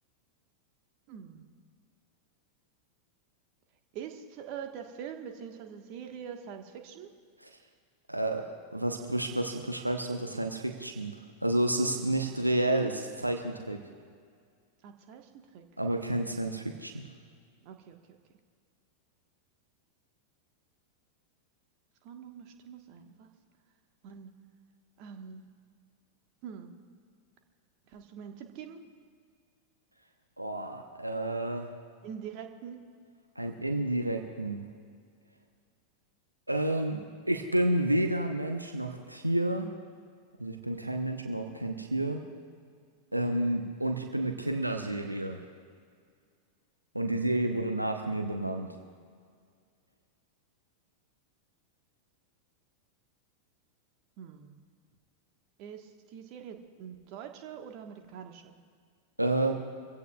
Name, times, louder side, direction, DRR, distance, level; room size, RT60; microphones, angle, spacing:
voice 1, 1.1-1.4 3.9-7.1 14.8-16.3 17.6-18.0 22.0-23.3 24.0-24.3 25.0-25.4 26.4-26.7 27.9-28.8 32.0-32.8 54.2-54.6 55.6-58.5, right 8 dB, 45° right, 5 dB, 1.4 m, -44 dB
voice 2, 8.1-8.4 8.7-13.8 15.8-17.1 30.4-31.7 33.4-34.6 36.5-39.7 40.4-42.2 43.1-45.4 46.9-48.7 59.2-59.5, right 1 dB, 85° right, 4 dB, 0.9 m, -30 dB
24.5 x 16.0 x 2.4 m, 2.1 s
figure-of-eight pair, 90°, 0 cm